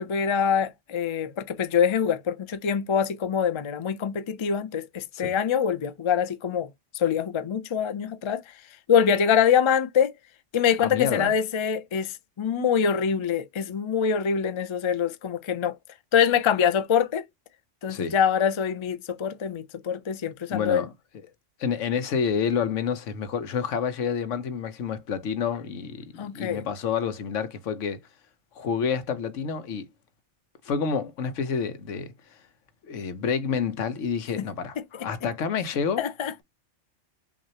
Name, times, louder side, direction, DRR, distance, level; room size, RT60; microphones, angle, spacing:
voice 1, 0.0-6.7 6.9-8.4 8.9-10.1 10.5-15.7 16.1-17.2 17.8-20.8 26.2-26.6 34.4-34.5 34.9-35.1 36.0-36.4, left 7 dB, 40° left, 0.4 m, -24 dB
voice 2, 10.8-11.3 17.9-18.1 20.5-20.9 21.6-28.0 28.5-29.9 30.6-32.1 32.8-34.8 35.0-36.0, left 6 dB, 85° left, 1.2 m, -28 dB
6.0 x 2.5 x 2.8 m
omnidirectional pair, 1.2 m